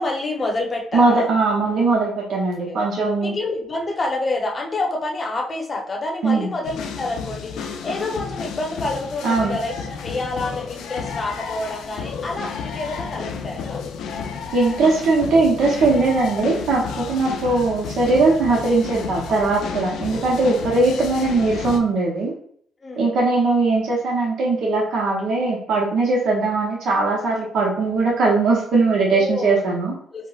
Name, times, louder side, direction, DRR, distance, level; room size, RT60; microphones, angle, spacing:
voice 1, 0.0-1.3 2.7-2.8 3.2-13.8 17.2-17.3 19.8-20.4 22.8-23.2 27.7-28.2 29.1-29.7 30.1-30.3, left 2 dB, 35° left, 1 dB, 0.7 m, -28 dB
voice 2, 0.9-3.3 6.2-6.5 9.2-9.6 14.5-22.3 23.0-29.9, right 3 dB, 70° right, -3 dB, 0.7 m, -20 dB
sound 1, 6.6-21.8, left 6 dB, 80° left, 0.4 m, -32 dB
4.2 x 2.1 x 2.3 m, 0.62 s
cardioid pair, 90°, 0 cm